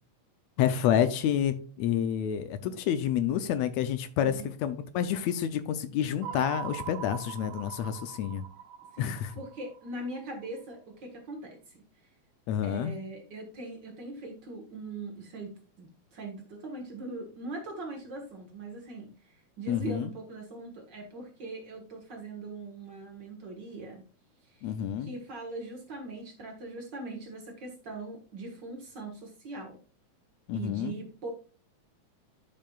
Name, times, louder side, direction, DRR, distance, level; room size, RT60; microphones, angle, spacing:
voice 1, 0.6-8.4 9.0-9.3 12.5-12.9 19.7-20.1 24.6-25.1 30.5-31.0, left 9 dB, 75° left, 11 dB, 1.7 m, -29 dB
voice 2, 4.2-4.5 8.9-11.8 12.6-24.0 24.6-24.7 25.0-29.8 30.5-31.3, right 2 dB, 50° right, 2 dB, 1.6 m, -41 dB
sound 1, 6.2-10.5, right 9 dB, 80° right, 1.9 m, -42 dB
11.5 x 5.5 x 2.3 m, 0.39 s
omnidirectional pair, 3.4 m